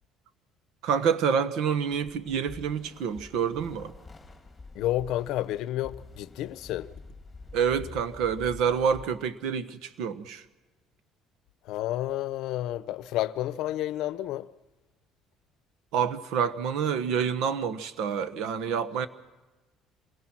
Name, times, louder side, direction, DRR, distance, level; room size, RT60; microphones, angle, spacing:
voice 1, 0.8-3.9 7.5-10.4 15.9-19.1, right 7 dB, 70° right, 1.3 m, -27 dB
sound 1, 1.7-9.0, left 3 dB, 10° left, 3.4 m, -47 dB
voice 2, 4.7-6.9 11.6-14.5, left 14 dB, 70° left, 0.7 m, -30 dB
27.0 x 21.0 x 6.2 m
cardioid pair, 145°, 0 cm